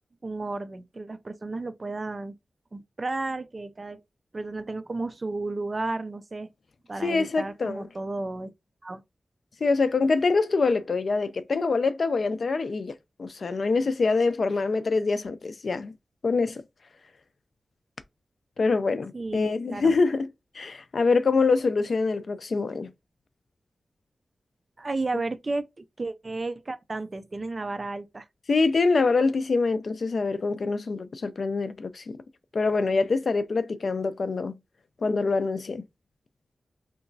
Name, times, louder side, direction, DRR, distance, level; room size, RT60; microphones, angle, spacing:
voice 1, 0.2-2.4 2.7-4.0 4.3-6.5 6.9-8.5 8.8-9.0 19.1-19.9 24.8-28.3, right 2 dB, 35° right, 0.4 m, -33 dB
voice 2, 7.0-7.9 9.6-12.9 13.2-15.9 16.2-16.6 18.6-20.3 20.6-22.9 28.5-32.0 32.5-34.5 35.0-35.8, left 4 dB, 55° left, 0.4 m, -25 dB
3.4 x 2.9 x 2.6 m
wide cardioid pair, 130°, 0 cm